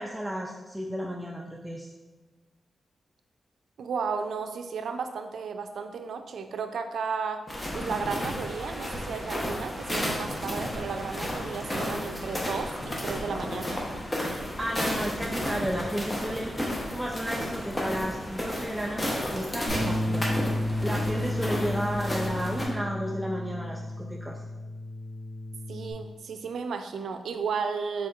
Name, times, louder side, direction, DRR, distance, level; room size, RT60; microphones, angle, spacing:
voice 1, 0.0-1.9 14.6-16.5 16.9-20.2 20.8-24.4, equal, 10° right, 0 dB, 0.3 m, -33 dB
voice 2, 3.8-7.4 7.7-13.9 25.7-28.1, right 5 dB, 85° right, 7 dB, 0.3 m, -33 dB
sound 1, 7.5-22.7, left 1 dB, 20° left, 0.8 m, -33 dB
Bass guitar, 19.7-25.9, left 1 dB, 40° left, 1.4 m, -32 dB
4.3 x 4.3 x 2.4 m, 1.2 s
wide cardioid pair, 105°, 0 cm